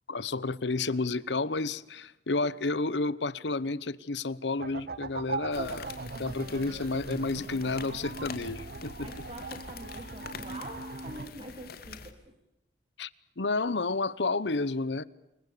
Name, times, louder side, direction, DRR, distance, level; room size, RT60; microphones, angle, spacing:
voice 1, 0.1-5.9 6.2-9.1 13.0-13.1 13.4-15.0, left 3 dB, 80° left, 1.0 m, -31 dB
sound 1, 4.6-11.3, right 3 dB, 60° right, 1.1 m, -39 dB
sound 2, 5.5-12.1, left 4 dB, 60° left, 2.4 m, -45 dB
voice 2, 9.0-12.3, right 1 dB, 35° right, 3.2 m, -45 dB
28.5 x 23.0 x 6.8 m
head